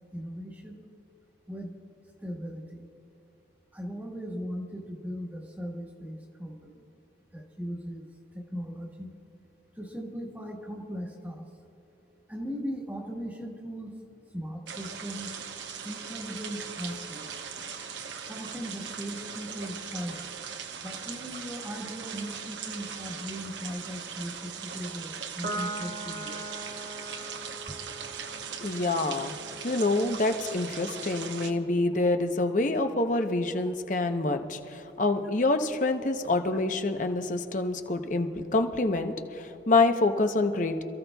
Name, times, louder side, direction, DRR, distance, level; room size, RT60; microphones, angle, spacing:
voice 1, 0.1-0.8 1.5-1.7 2.2-2.9 3.7-6.8 7.3-8.1 8.3-9.1 9.8-11.4 12.3-13.9 14.3-15.3 15.8-17.3 18.3-20.3 20.8-26.4 32.0-32.1, equal, 10° right, -1 dB, 1.3 m, -38 dB
sound 1, 14.7-31.5, right 6 dB, 85° right, 0.9 m, -39 dB
Piano, 25.4-32.1, right 1 dB, 55° right, 1.0 m, -42 dB
voice 2, 28.6-29.3 29.6-40.8, left 2 dB, 45° left, 6 dB, 0.8 m, -26 dB
27.0 x 15.0 x 2.3 m, 3.0 s
head